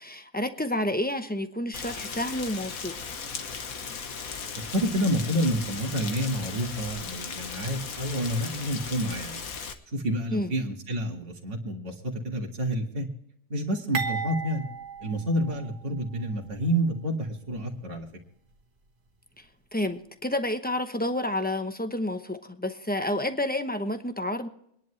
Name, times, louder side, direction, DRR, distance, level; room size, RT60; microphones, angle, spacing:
voice 1, 0.0-3.0 10.3-10.5 19.4-19.5 19.7-24.5, left 1 dB, 10° left, 8 dB, 0.6 m, -30 dB
Rain, 1.7-9.7, left 5 dB, 70° left, 1.6 m, -37 dB
voice 2, 4.7-9.4 9.9-13.1 13.5-14.6 15.0-18.1, equal, 40° right, 0 dB, 2.1 m, -29 dB
sound 1, 13.9-16.1 16.5-16.6 17.5-17.6, right 5 dB, 85° right, 2.1 m, -35 dB
24.0 x 10.5 x 3.2 m, 0.74 s
omnidirectional pair, 1.6 m